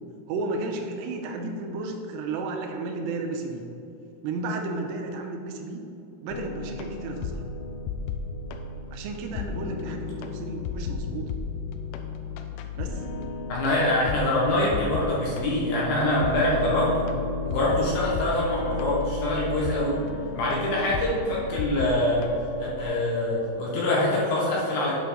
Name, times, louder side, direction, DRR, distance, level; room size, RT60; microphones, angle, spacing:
voice 1, 0.3-3.7 4.2-5.8 6.2-7.5 8.9-11.3 12.8-13.0 20.0-20.1, right 3 dB, 85° right, 2 dB, 2.7 m, -33 dB
sound 1, 6.3-22.9, left 4 dB, 85° left, 2.4 m, -33 dB
voice 2, 13.5-17.1 17.4-20.0 20.4-22.3 22.6-25.0, left 1 dB, 70° left, -5 dB, 2.4 m, -24 dB
8.5 x 5.6 x 3.9 m, 2.7 s
omnidirectional pair, 5.5 m